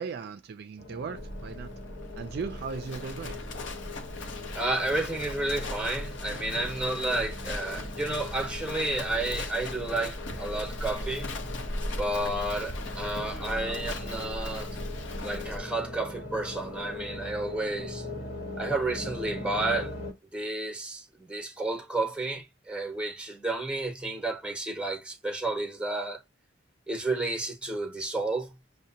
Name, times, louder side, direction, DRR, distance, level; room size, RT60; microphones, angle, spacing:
voice 1, 0.0-1.7 2.1-3.4, right 5 dB, 55° right, 0.3 m, -37 dB
sound 1, 0.8-20.1, left 2 dB, 55° left, 1.2 m, -41 dB
Livestock farm animals working animals, 1.2-15.6, left 1 dB, 75° left, 0.7 m, -38 dB
voice 2, 4.5-11.3 11.9-14.7 15.2-18.1 18.6-19.9 20.3-26.2 26.9-28.5, right 2 dB, 5° right, 0.8 m, -31 dB
6.2 x 2.1 x 2.7 m
head